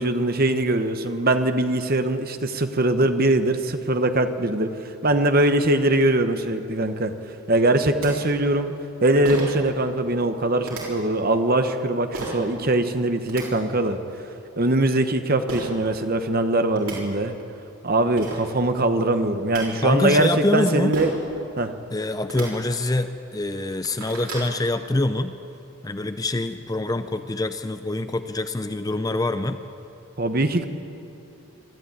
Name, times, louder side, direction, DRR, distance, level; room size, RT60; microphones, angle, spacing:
voice 1, 0.0-4.8 5.0-7.1 7.5-8.7 9.0-14.0 14.6-17.3 17.8-21.1 21.6-21.7 30.2-30.6, right 1 dB, 40° right, 8 dB, 1.1 m, -22 dB
sound 1, 8.0-8.1 9.2-9.6 10.6-10.8 12.1-12.4 13.1-13.4 15.5-15.7 16.4-16.5 16.7-17.0 17.8-17.9 18.2-18.4 19.2-19.6 20.9-21.2 22.2-22.5 23.1-23.2 23.6-24.5, right 2 dB, 80° right, 6.0 m, -32 dB
voice 2, 19.8-21.0 21.9-25.4 25.8-29.6, left 2 dB, 15° left, 10 dB, 0.5 m, -25 dB
23.0 x 13.0 x 9.5 m, 2.8 s
head